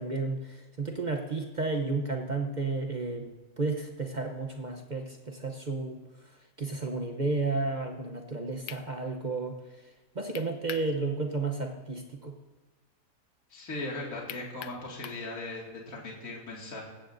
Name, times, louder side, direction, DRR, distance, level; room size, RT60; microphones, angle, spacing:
voice 1, 0.0-6.0 6.6-9.6 10.1-12.3, right 3 dB, 40° right, 4 dB, 0.6 m, -32 dB
sound 1, 8.7-8.9 10.3-10.9 11.3-11.4 14.3-15.3, left 11 dB, 70° left, 1.0 m, -42 dB
voice 2, 13.5-16.9, left 2 dB, 50° left, -3 dB, 2.6 m, -38 dB
18.5 x 15.5 x 2.6 m, 1.2 s
omnidirectional pair, 1.8 m